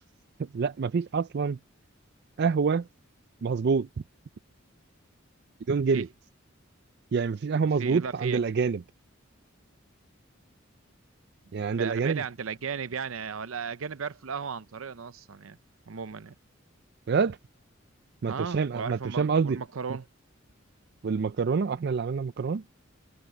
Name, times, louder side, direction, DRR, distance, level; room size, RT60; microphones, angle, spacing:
voice 1, 0.5-1.6 2.4-2.9 3.4-3.9 5.7-6.1 7.1-8.8 11.5-12.2 17.1-17.4 18.2-19.6 21.0-22.6, right 5 dB, 55° right, 0.4 m, -26 dB
voice 2, 7.7-8.4 11.7-15.6 15.9-16.3 18.3-20.1, right 6 dB, 90° right, 0.7 m, -35 dB
head